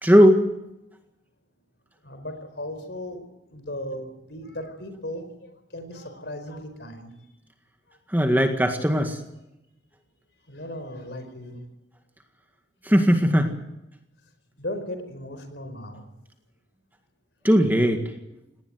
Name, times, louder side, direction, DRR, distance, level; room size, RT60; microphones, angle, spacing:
voice 1, 0.0-0.4 8.1-9.2 12.9-13.5 17.4-18.0, equal, 10° right, 5 dB, 1.9 m, -18 dB
voice 2, 2.0-3.2 3.5-7.1 10.5-11.6 14.6-16.0, left 1 dB, 60° left, 9 dB, 4.7 m, -36 dB
19.5 x 18.5 x 9.4 m, 0.89 s
head